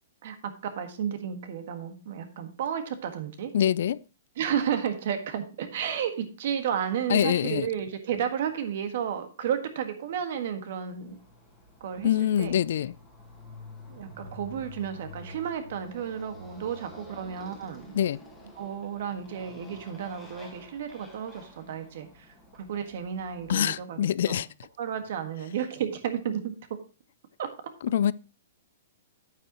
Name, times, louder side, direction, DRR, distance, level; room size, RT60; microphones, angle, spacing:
voice 1, 0.6-3.5 4.4-11.2 11.8-12.1 12.4-12.6 13.9-17.9 18.6-24.0 24.3-24.4 24.8-26.5 27.4-27.7, right 8 dB, 55° right, 1.6 m, -32 dB
voice 2, 3.5-4.0 7.1-7.7 12.0-12.9 17.9-18.2 23.5-24.5 27.8-28.1, left 10 dB, 60° left, 0.3 m, -25 dB
Motorcycle, 11.0-23.7, left 2 dB, 5° left, 2.0 m, -49 dB
9.4 x 8.9 x 3.0 m
hypercardioid pair, 160°, 0 cm